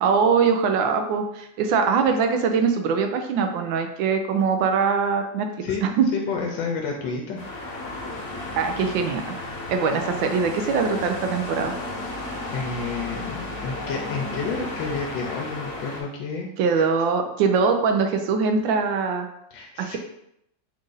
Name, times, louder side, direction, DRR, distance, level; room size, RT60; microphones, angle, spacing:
voice 1, 0.0-5.5 5.8-6.1 8.5-9.2 9.7-11.7 16.6-19.3 19.8-20.0, right 5 dB, 85° right, 6 dB, 1.3 m, -22 dB
voice 2, 6.1-7.4 12.5-16.9 19.5-20.0, left 5 dB, 90° left, 0 dB, 1.3 m, -30 dB
sound 1, 7.4-16.0, left 2 dB, 50° left, 1.1 m, -33 dB
4.1 x 2.5 x 3.8 m, 0.78 s
omnidirectional pair, 2.0 m